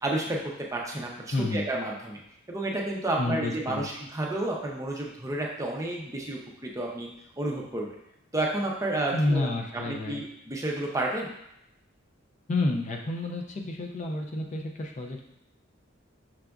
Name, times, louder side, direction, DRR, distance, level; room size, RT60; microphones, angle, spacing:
voice 1, 0.0-2.2 2.5-7.1 7.4-7.9 8.3-9.5 9.7-11.3, right 1 dB, 15° right, -1 dB, 0.5 m, -31 dB
voice 2, 1.3-1.6 3.2-4.0 9.1-10.2 12.5-15.2, left 2 dB, 40° left, 2 dB, 0.4 m, -29 dB
5.9 x 2.4 x 2.3 m, 0.80 s
head